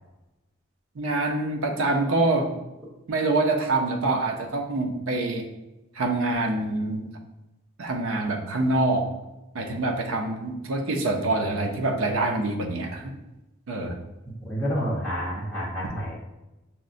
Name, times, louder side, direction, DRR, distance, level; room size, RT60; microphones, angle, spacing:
voice 1, 1.0-2.5 3.1-5.5 6.0-7.1 7.8-9.1 9.5-13.1 13.7-14.0, right 2 dB, 80° right, 3 dB, 0.5 m, -25 dB
voice 2, 14.4-16.1, equal, 5° right, -11 dB, 0.9 m, -29 dB
5.7 x 2.1 x 2.5 m, 1.0 s
head